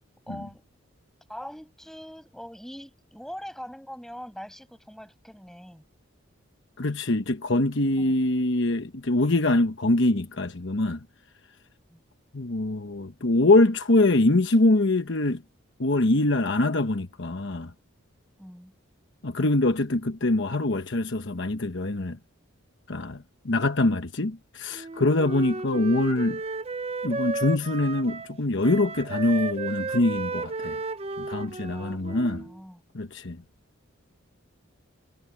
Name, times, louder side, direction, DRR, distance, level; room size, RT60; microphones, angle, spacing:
voice 1, 0.3-0.6 1.3-5.8 8.0-8.2 11.9-12.0 18.4-18.7 31.7-32.8, equal, ahead, 6.0 m, -42 dB
voice 2, 6.8-11.0 12.3-15.4 15.8-17.7 19.2-22.2 22.9-26.4 27.0-30.8 31.2-32.4 32.9-33.4, left 2 dB, 55° left, 1.1 m, -24 dB
Wind instrument woodwind instrument, 24.7-28.4 28.6-32.6, right 3 dB, 30° right, 0.5 m, -33 dB
head